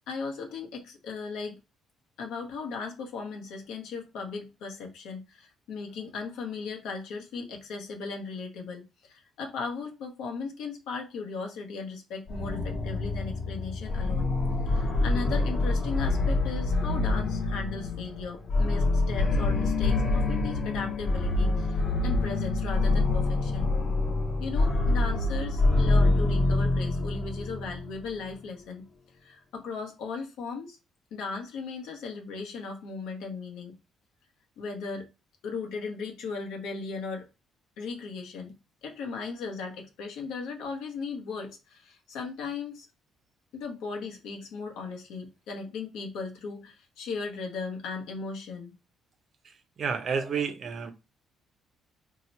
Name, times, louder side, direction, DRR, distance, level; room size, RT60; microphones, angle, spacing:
voice 1, 0.1-1.6 2.2-14.3 14.7-23.7 24.4-28.8 29.2-30.8 31.1-33.7 34.6-35.1 35.4-37.3 37.8-38.5 38.8-42.9 43.5-48.7 50.2-50.3, left 4 dB, 80° left, 0.8 m, -37 dB
sound 1, 12.3-28.0, left 2 dB, 35° left, 0.6 m, -26 dB
voice 2, 49.4-50.9, right 6 dB, 40° right, 0.5 m, -31 dB
2.8 x 2.1 x 4.0 m
cardioid pair, 150°, 0 cm